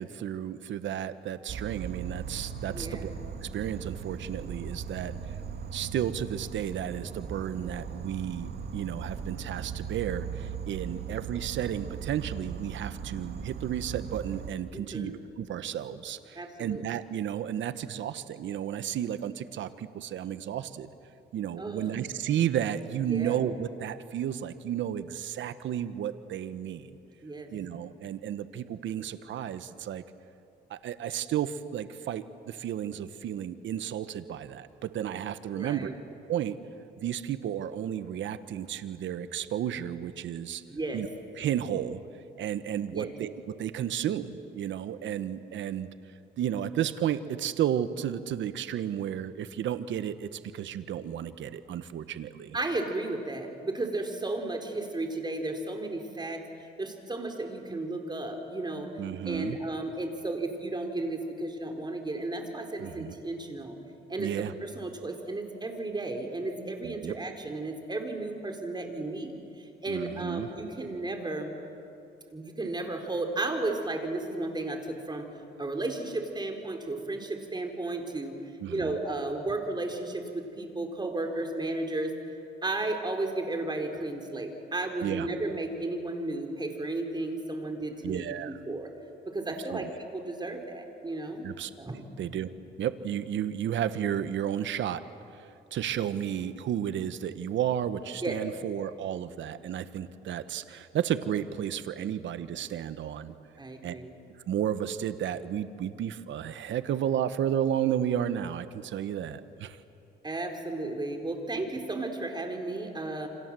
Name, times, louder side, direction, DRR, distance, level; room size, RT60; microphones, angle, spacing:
voice 1, 0.0-3.1 3.4-5.1 5.7-20.9 21.3-26.9 27.5-30.0 30.7-35.9 36.3-36.6 37.0-40.6 40.9-41.1 41.4-42.0 42.4-45.9 46.4-52.6 59.0-59.6 62.8-63.1 64.2-64.5 66.8-67.1 69.9-70.5 78.6-78.9 85.0-85.3 88.0-88.5 89.7-89.9 91.4-91.7 92.2-92.5 92.8-95.0 95.4-103.3 103.8-103.9 104.5-109.8, right 10 dB, 70° right, 12 dB, 1.1 m, -32 dB
Insect, 1.5-14.5, right 6 dB, 55° right, 2.0 m, -38 dB
voice 2, 2.7-3.0 14.7-15.2 16.4-16.8 21.6-21.9 23.1-23.4 27.2-27.5 35.5-35.9 40.7-41.0 42.9-43.1 52.5-56.4 56.8-58.9 59.2-63.8 64.1-71.5 72.3-75.3 75.6-78.4 78.7-82.2 82.6-88.9 89.3-91.5 91.8-92.1 98.2-98.4 103.6-104.1 110.2-113.3, right 2 dB, 20° right, 3 dB, 4.3 m, -34 dB
28.5 x 26.0 x 7.7 m, 2.6 s
cardioid pair, 90°, 20 cm